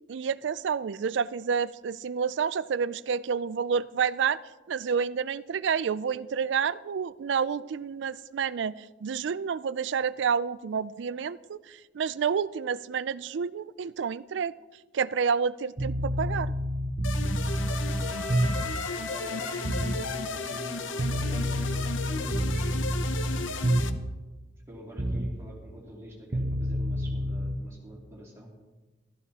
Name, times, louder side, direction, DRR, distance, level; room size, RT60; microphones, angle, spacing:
voice 1, 0.1-4.4 4.7-14.5 14.9-16.5, right 6 dB, 65° right, 18 dB, 0.4 m, -29 dB
sound 1, 15.8-18.8 19.6-20.0 21.0-24.2 25.0-25.4 26.3-27.5, equal, 40° right, 0.9 m, -28 dB
sound 2, 17.0-23.9, left 4 dB, 80° left, 0.8 m, -35 dB
Wind instrument woodwind instrument, 17.4-21.4, left 4 dB, 20° left, 2.6 m, -40 dB
voice 2, 19.1-23.6 24.7-28.5, equal, 15° right, -4 dB, 2.9 m, -45 dB
14.0 x 13.0 x 4.2 m, 1.2 s
head